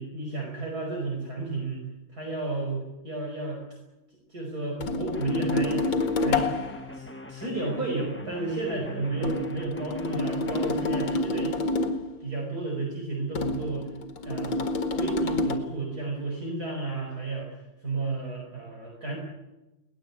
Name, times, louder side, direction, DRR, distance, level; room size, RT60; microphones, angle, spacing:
voice 1, 0.0-1.8 2.1-3.6 4.3-5.9 6.1-6.5 6.9-11.6 12.2-13.9 14.2-14.6 14.9-19.2, right 3 dB, 40° right, -1 dB, 5.7 m, -32 dB
sound 1, 4.8-6.8 9.2-12.1 13.3-15.6, left 2 dB, 60° left, 2.7 m, -28 dB
sound 2, 5.1-11.2, left 2 dB, 10° left, 0.8 m, -43 dB
23.0 x 19.0 x 8.5 m, 1.0 s
omnidirectional pair, 2.4 m